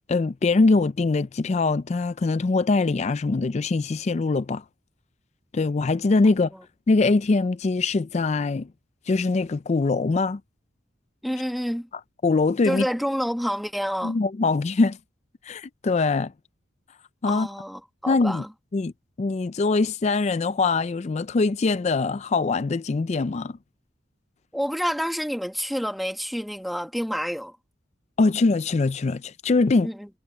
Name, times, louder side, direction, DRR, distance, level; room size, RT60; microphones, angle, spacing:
voice 1, 0.1-4.6 5.5-6.5 6.9-8.7 9.1-10.4 12.2-12.9 14.0-15.0 15.5-16.3 17.2-17.5 18.1-18.4 18.7-18.9 19.2-23.6 28.2-29.9, left 3 dB, 35° left, 0.4 m, -22 dB
voice 2, 11.2-11.9 12.6-14.2 17.3-18.5 24.5-27.6 29.8-30.1, equal, ahead, 1.4 m, -28 dB
head